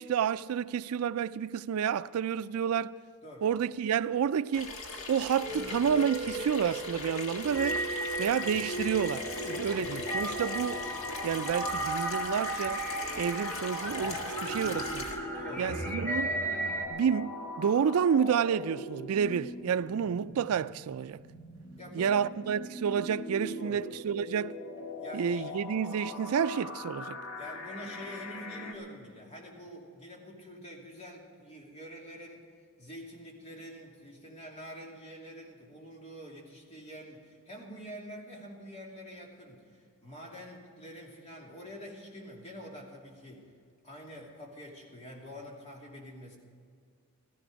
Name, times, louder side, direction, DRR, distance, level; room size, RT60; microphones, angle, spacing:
voice 1, 0.0-2.9 3.4-4.7 5.1-7.8 8.2-10.8 11.2-12.8 13.2-15.0 15.6-16.4 16.9-21.2 21.9-24.5 25.1-27.2, right 7 dB, 80° right, 0.4 m, -30 dB
Water tap faucet / Sink (filling or washing), 4.5-15.2, left 3 dB, 65° left, 1.6 m, -41 dB
sound 1, 5.4-16.9, right 1 dB, 10° left, 1.8 m, -35 dB
sound 2, 9.1-28.7, left 2 dB, 80° left, 1.9 m, -42 dB
voice 2, 15.3-15.8 21.8-22.3 23.5-23.8 25.0-25.6 27.4-32.4 32.8-43.4 43.8-46.4, equal, 30° left, 2.7 m, -46 dB
15.0 x 15.0 x 5.1 m
head